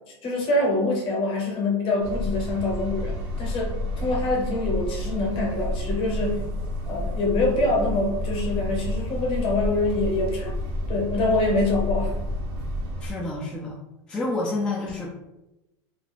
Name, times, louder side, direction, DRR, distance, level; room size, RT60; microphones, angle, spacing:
voice 1, 0.2-6.5 6.9-10.6 10.9-12.2, left 2 dB, 35° left, 0 dB, 0.8 m, -25 dB
sound 1, 2.0-13.1, left 1 dB, 60° right, 0.7 m, -30 dB
voice 2, 13.0-13.8 14.1-15.1, left 2 dB, 5° left, -4 dB, 0.3 m, -28 dB
2.4 x 2.1 x 3.2 m, 0.98 s
supercardioid pair, 135°, 15 cm